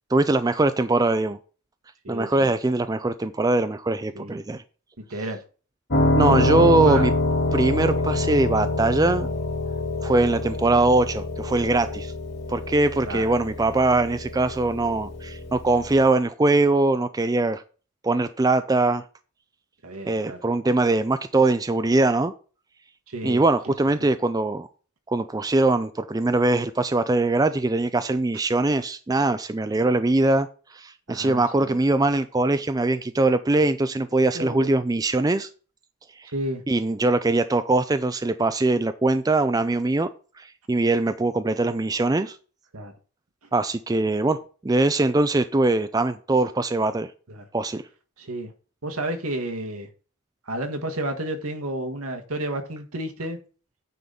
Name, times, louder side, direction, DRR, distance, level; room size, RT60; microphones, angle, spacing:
voice 1, 0.1-1.4 2.1-4.6 6.2-7.1 7.5-9.3 10.0-12.1 12.5-17.6 18.0-19.0 20.0-22.3 23.2-24.7 25.1-30.5 30.7-35.5 36.2-36.3 36.7-40.1 40.4-42.4 43.5-47.1 47.5-47.8, right 2 dB, 15° right, 0.4 m, -22 dB
voice 2, 2.0-2.5 4.1-4.4 5.1-5.4 6.3-7.1 7.5-7.6 13.0-13.3 19.8-20.4 23.1-23.7 24.0-24.1 31.1-31.8 34.3-34.8 36.3-36.6 42.7-42.9 47.3-47.4 48.2-48.5 48.8-49.9 50.5-53.4, right 1 dB, 75° right, 1.6 m, -31 dB
Piano, 5.9-16.0, left 2 dB, 50° left, 2.7 m, -26 dB
9.3 x 4.0 x 6.8 m
head